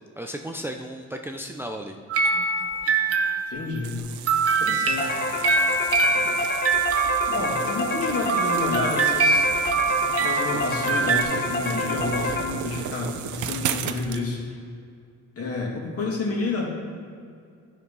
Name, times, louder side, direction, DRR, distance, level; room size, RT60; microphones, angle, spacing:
voice 1, 0.2-2.0 6.1-6.4, equal, 5° right, 3 dB, 0.6 m, -35 dB
sound 1, 2.1-3.7 4.3-11.2, right 4 dB, 50° right, 1.1 m, -24 dB
voice 2, 3.5-4.0 4.6-5.2 7.3-9.5 9.9-14.6 15.4-16.7, left 3 dB, 50° left, -1 dB, 2.5 m, -30 dB
sound 2, 3.8-14.2, right 10 dB, 75° right, 0.6 m, -35 dB
sound 3, 5.0-12.8, left 2 dB, 35° left, 1.4 m, -28 dB
11.5 x 4.8 x 5.4 m, 2.3 s
cardioid pair, 90°, 30 cm